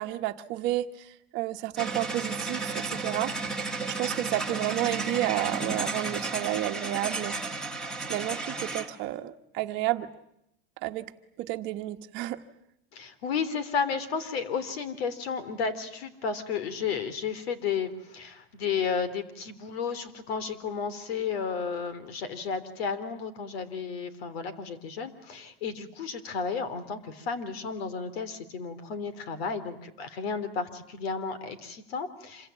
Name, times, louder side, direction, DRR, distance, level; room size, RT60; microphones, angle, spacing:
voice 1, 0.0-3.3 3.9-7.4 8.1-10.1 10.8-11.1 11.4-12.4, right 15 dB, 35° right, 7 dB, 1.2 m, -31 dB
sound 1, 1.8-8.9, right 3 dB, ahead, 1.6 m, -33 dB
voice 2, 12.9-32.5, left 6 dB, 80° left, 14 dB, 3.7 m, -33 dB
27.0 x 24.0 x 9.2 m, 0.80 s
supercardioid pair, 165°, 30 cm